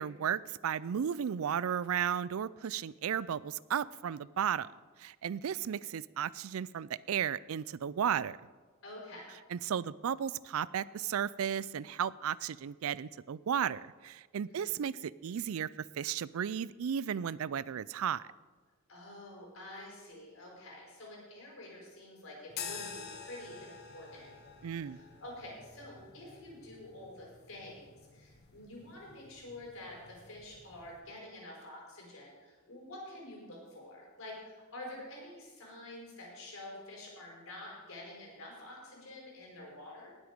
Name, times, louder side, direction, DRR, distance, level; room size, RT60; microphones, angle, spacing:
voice 1, 0.0-4.7 5.0-8.4 9.5-15.7 16.0-18.2 24.6-25.0, right 8 dB, 80° right, 20 dB, 0.4 m, -34 dB
voice 2, 8.8-9.3 14.5-14.7 18.9-24.3 24.8-40.1, left 1 dB, 70° left, -2 dB, 5.2 m, -48 dB
sound 1, 22.5-31.0, left 6 dB, 50° left, 1.4 m, -49 dB
19.0 x 8.0 x 5.2 m, 1.4 s
head